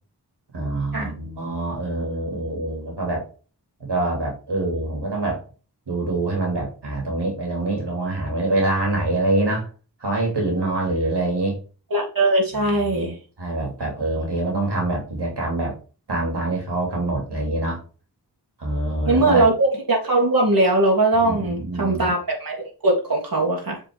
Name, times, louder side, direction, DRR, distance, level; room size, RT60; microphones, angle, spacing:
voice 1, 0.5-3.2 3.8-5.4 5.9-9.7 10.0-11.6 12.6-13.1 13.4-15.7 16.1-17.8 18.6-19.5 21.2-22.1, right 2 dB, 85° right, 0 dB, 2.8 m, -25 dB
voice 2, 11.9-13.2 19.1-23.8, right 2 dB, 55° right, -2 dB, 3.0 m, -20 dB
7.5 x 4.9 x 3.6 m, 0.36 s
wide cardioid pair, 45°, 40 cm